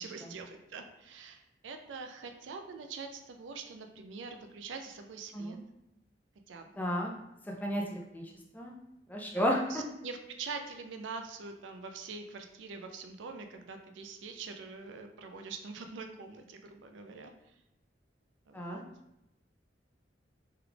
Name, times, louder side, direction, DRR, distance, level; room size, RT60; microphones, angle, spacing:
voice 1, 0.0-5.6 6.5-6.7 9.3-17.3 18.5-18.8, right 4 dB, 85° right, 6 dB, 0.4 m, -44 dB
voice 2, 6.8-7.1 7.6-8.2 8.5-8.7 9.1-9.8 18.5-18.8, equal, 10° left, -1 dB, 0.4 m, -32 dB
3.2 x 2.3 x 3.3 m, 0.86 s
head